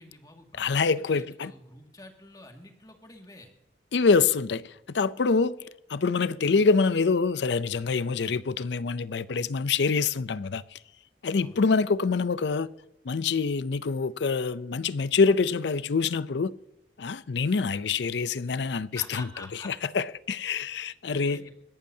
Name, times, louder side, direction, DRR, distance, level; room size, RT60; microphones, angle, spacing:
voice 1, 0.0-3.5 11.4-11.6 18.9-19.7 21.0-21.5, left 2 dB, 20° left, 2.0 m, -48 dB
voice 2, 0.6-1.5 3.9-5.6 5.9-10.8 11.2-12.7 13.0-16.5 17.0-19.3 19.7-21.4, left 4 dB, 75° left, 0.5 m, -25 dB
21.0 x 12.0 x 2.8 m
head